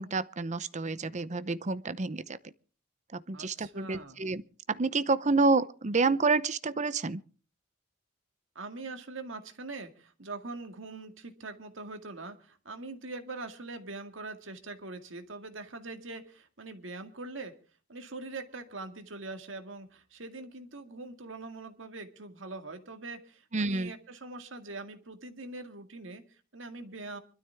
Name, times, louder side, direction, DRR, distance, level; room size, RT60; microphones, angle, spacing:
voice 1, 0.0-2.5 3.1-4.4 4.7-7.2 23.5-23.9, right 3 dB, 35° right, 0.7 m, -29 dB
voice 2, 3.3-4.2 8.6-17.5 17.9-27.2, right 3 dB, 70° right, 2.1 m, -43 dB
25.0 x 12.5 x 3.5 m
head